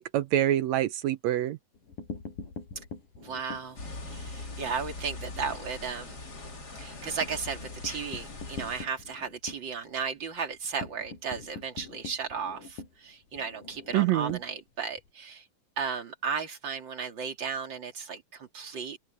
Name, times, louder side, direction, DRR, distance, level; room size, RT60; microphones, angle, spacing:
voice 1, 0.0-1.6 13.9-14.4, right 13 dB, 85° right, 1.5 m, -26 dB
sound 1, 1.7-5.0 5.3-5.5 5.8-5.9 6.2-15.1, left 4 dB, 65° left, 7.3 m, -44 dB
voice 2, 3.2-3.8 4.0-6.2 6.8-15.5 15.8-19.0, right 5 dB, 35° right, 2.9 m, -35 dB
sound 2, 3.8-8.9, left 2 dB, 30° left, 3.4 m, -41 dB
open air
omnidirectional pair, 4.1 m